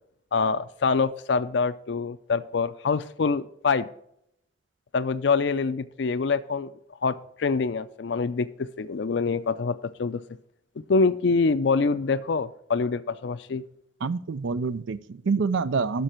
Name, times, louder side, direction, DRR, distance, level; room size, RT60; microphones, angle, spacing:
voice 1, 0.3-3.9 4.9-6.7 7.0-10.2 10.9-13.6, left 4 dB, 65° left, 14 dB, 0.4 m, -25 dB
voice 2, 14.0-16.0, right 4 dB, 80° right, 15 dB, 0.5 m, -27 dB
11.5 x 6.4 x 4.4 m, 0.73 s
head